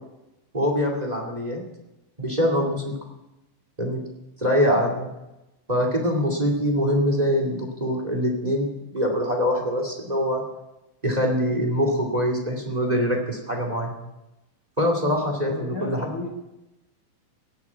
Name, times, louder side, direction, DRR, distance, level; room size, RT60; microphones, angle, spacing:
voice 1, 0.5-1.6 2.2-3.0 3.8-4.0 4.4-5.1 5.7-10.4 11.0-13.9 14.8-16.1, equal, 15° right, 2 dB, 1.8 m, -24 dB
voice 2, 15.5-16.3, left 3 dB, 70° left, 1 dB, 0.8 m, -33 dB
17.0 x 8.3 x 8.4 m, 0.96 s
omnidirectional pair, 4.1 m